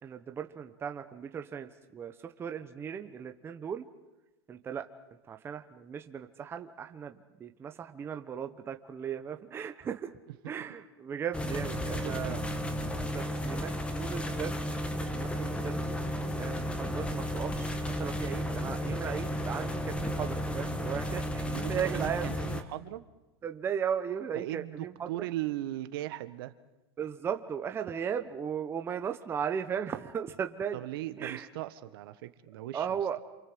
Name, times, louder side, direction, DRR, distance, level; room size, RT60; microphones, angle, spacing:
voice 1, 0.0-3.9 4.5-4.9 5.3-10.1 10.5-12.4 13.1-14.7 15.0-15.8 16.4-22.2 23.4-25.1 27.0-30.8 31.2-31.5 32.7-33.2, right 8 dB, 15° right, 7 dB, 1.1 m, -36 dB
sound 1, 11.3-22.6, equal, 10° left, 1.7 m, -33 dB
voice 2, 11.9-12.4 21.4-23.0 24.3-26.5 30.7-32.9, right 15 dB, 60° right, 11 dB, 1.5 m, -38 dB
28.5 x 24.0 x 7.9 m, 1.0 s
supercardioid pair, 145°, 14 cm